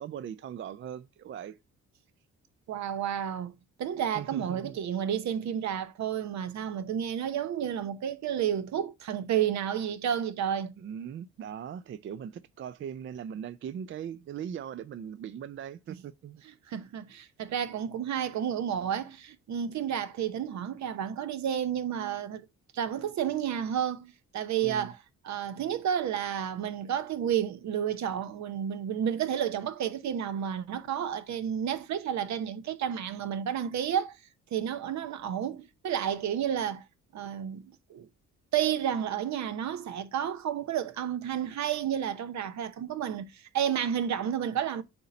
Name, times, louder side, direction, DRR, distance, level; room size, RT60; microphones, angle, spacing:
voice 1, 0.0-1.6 4.1-4.8 10.8-16.4 24.6-24.9, right 9 dB, 40° right, 0.4 m, -40 dB
voice 2, 2.7-3.5 3.8-10.7 15.9-16.0 16.7-22.4 22.7-25.0 25.2-34.2 34.5-36.8 37.1-38.1 38.5-44.8, right 9 dB, 65° right, 0.8 m, -31 dB
7.9 x 2.9 x 4.2 m
cardioid pair, 90°, 30 cm